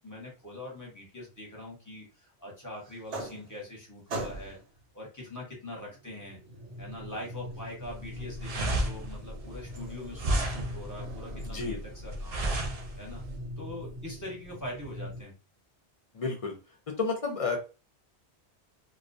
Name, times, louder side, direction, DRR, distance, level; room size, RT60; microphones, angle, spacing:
voice 1, 0.0-4.6 4.9-6.4 6.8-12.5 13.0-13.2 13.6-15.3, left 1 dB, 20° left, -2 dB, 0.8 m, -43 dB
sound 1, 2.9-3.8 4.1-4.7 5.9-15.2, equal, 85° right, 0.9 m, -41 dB
sound 2, 7.8-13.4, right 1 dB, 55° right, 0.4 m, -32 dB
voice 2, 11.5-11.8 16.1-16.5 17.0-17.6, left 4 dB, 50° left, 1 dB, 0.4 m, -30 dB
2.3 x 2.1 x 2.5 m, 0.32 s
omnidirectional pair, 1.1 m